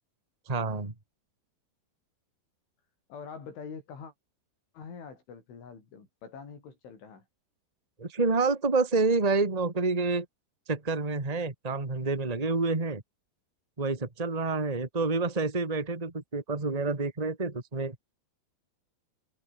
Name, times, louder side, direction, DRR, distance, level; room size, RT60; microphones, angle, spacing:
voice 1, 0.5-0.9 8.0-10.2 10.7-13.0 13.8-17.9, right 3 dB, 90° right, 0.3 m, -28 dB
voice 2, 3.1-4.1 4.7-7.3, left 5 dB, 90° left, 8.8 m, -44 dB
omnidirectional pair, 5.3 m